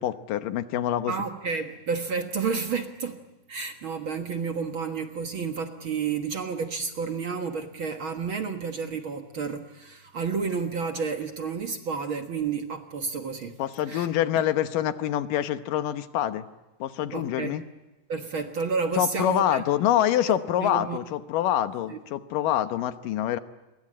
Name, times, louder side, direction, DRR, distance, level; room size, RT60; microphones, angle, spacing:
voice 1, 0.0-1.1 13.6-16.5 16.8-17.6 18.9-23.4, left 11 dB, 90° left, 2.8 m, -26 dB
voice 2, 1.1-13.6 13.9-14.1 17.1-17.6 18.1-19.6 20.6-21.0 21.9-22.0, right 5 dB, 50° right, 1.8 m, -31 dB
29.0 x 23.0 x 8.7 m
omnidirectional pair, 3.7 m